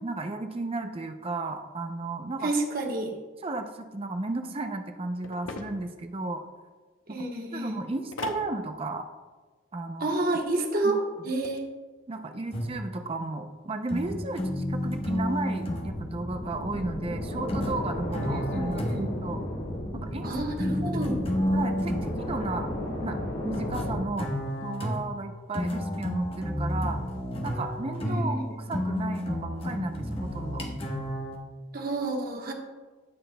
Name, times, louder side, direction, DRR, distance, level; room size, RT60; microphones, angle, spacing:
voice 1, 0.0-2.5 3.4-6.4 7.1-7.2 7.5-9.1 9.7-10.1 10.8-10.9 12.1-19.4 19.9-20.3 20.8-21.0 21.5-22.7 23.0-23.2 23.4-27.0 27.4-30.6, right 2 dB, 30° right, 6 dB, 0.5 m, -34 dB
voice 2, 2.4-3.1 7.1-7.8 10.0-11.0 11.2-11.6 18.5-19.1 20.2-21.2 28.0-28.4 31.7-32.5, right 2 dB, 50° right, 1 dB, 1.2 m, -29 dB
sound 1, 5.2-6.0 8.1-8.5 11.2-11.6, left 3 dB, 90° left, 0.7 m, -39 dB
sound 2, 12.5-13.0 13.9-16.0 17.5-19.3 20.6-22.2 23.5-31.4, equal, 30° left, 1.0 m, -31 dB
sound 3, 15.8-24.0, left 1 dB, 50° left, 1.6 m, -34 dB
16.0 x 5.9 x 2.2 m, 1.3 s
head